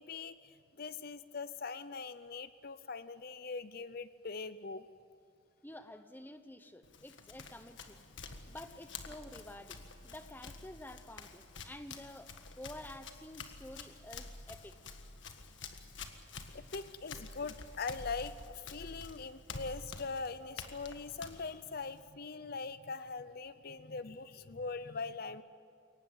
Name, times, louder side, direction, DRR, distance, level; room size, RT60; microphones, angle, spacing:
voice 1, 0.0-4.9 16.5-25.4, left 4 dB, 50° left, 14 dB, 0.6 m, -42 dB
voice 2, 5.6-8.0 8.5-14.8, left 1 dB, 10° left, 9 dB, 1.0 m, -50 dB
Run, 6.8-22.1, left 4 dB, 65° left, 1.7 m, -49 dB
23.0 x 18.5 x 9.4 m, 2.2 s
head